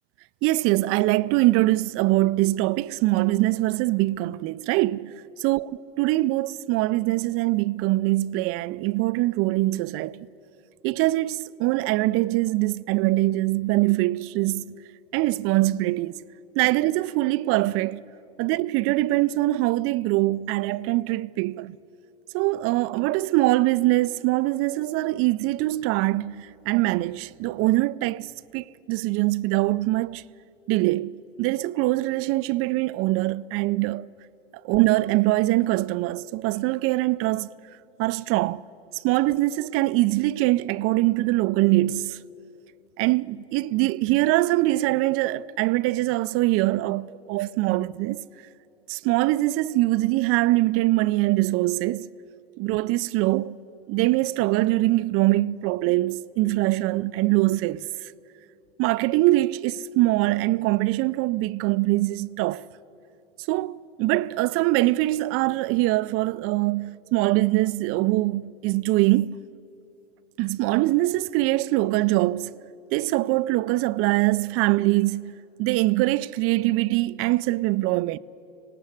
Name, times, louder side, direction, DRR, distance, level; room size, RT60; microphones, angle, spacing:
voice 1, 0.4-5.7 6.0-10.3 10.8-14.7 15.1-16.1 16.5-18.0 18.4-21.8 22.3-30.2 30.7-34.1 34.6-37.5 38.0-38.6 38.9-42.2 43.0-48.3 48.9-52.1 52.6-53.6 53.9-57.9 58.8-62.7 63.5-69.4 70.4-72.6 72.9-75.3 75.6-78.2, right 18 dB, 50° right, 0.5 m, -23 dB
19.0 x 18.0 x 8.3 m
hypercardioid pair, 90°, 30 cm